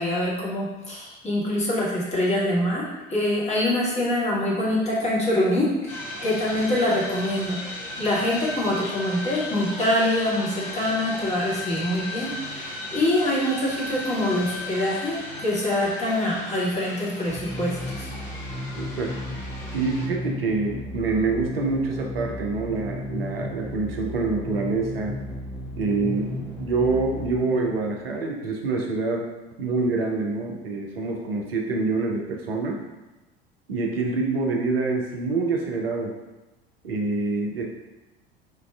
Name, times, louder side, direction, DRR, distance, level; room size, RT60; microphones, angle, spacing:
voice 1, 0.0-7.6 8.0-18.1, left 1 dB, 25° left, -6 dB, 1.3 m, -25 dB
sound 1, 5.9-20.1, left 1 dB, 40° left, 0.8 m, -36 dB
sound 2, 17.3-28.0, left 1 dB, 5° right, 0.6 m, -34 dB
voice 2, 18.8-19.1 19.7-25.2 25.8-29.3 29.6-32.8 33.7-36.1 36.8-37.6, right 3 dB, 75° right, 1 dB, 0.6 m, -26 dB
4.5 x 2.4 x 2.3 m, 1.1 s
figure-of-eight pair, 70°, 29 cm